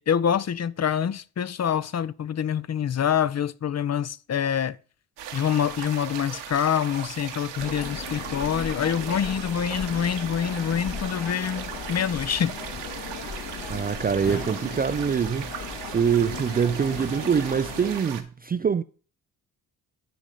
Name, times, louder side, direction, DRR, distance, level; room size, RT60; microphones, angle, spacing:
voice 1, 0.0-4.8 5.3-12.5, left 8 dB, 35° left, 0.6 m, -26 dB
sound 1, 5.2-18.2, right 9 dB, 70° right, 1.3 m, -38 dB
sound 2, 7.6-18.0, left 5 dB, 70° left, 2.6 m, -37 dB
voice 2, 13.7-15.5 15.9-18.8, right 7 dB, 20° right, 0.4 m, -24 dB
11.5 x 4.9 x 5.2 m
hypercardioid pair, 40°, 44 cm